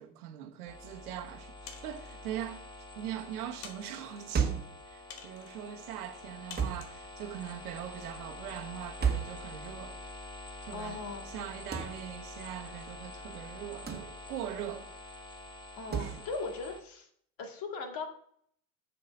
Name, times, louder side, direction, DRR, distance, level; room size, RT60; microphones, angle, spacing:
voice 1, 0.0-2.6 2.9-10.0 10.6-11.0 11.2-14.9 15.9-16.2, right 10 dB, 80° right, 1.3 m, -41 dB
sound 1, 0.7-16.8, left 2 dB, 10° left, 1.1 m, -47 dB
sound 2, 1.7-2.2 2.9-3.0 3.6-4.3 5.1-5.6 6.5-7.0, left 6 dB, 80° left, 1.6 m, -49 dB
sound 3, 4.3-4.8 6.6-6.9 9.0-9.4 11.7-12.0 13.9-14.1 15.9-16.2, right 6 dB, 20° right, 1.6 m, -30 dB
voice 2, 10.7-11.2 15.8-17.1 17.4-18.1, left 4 dB, 50° left, 2.1 m, -38 dB
7.2 x 6.8 x 5.3 m
hypercardioid pair, 80°, 45 cm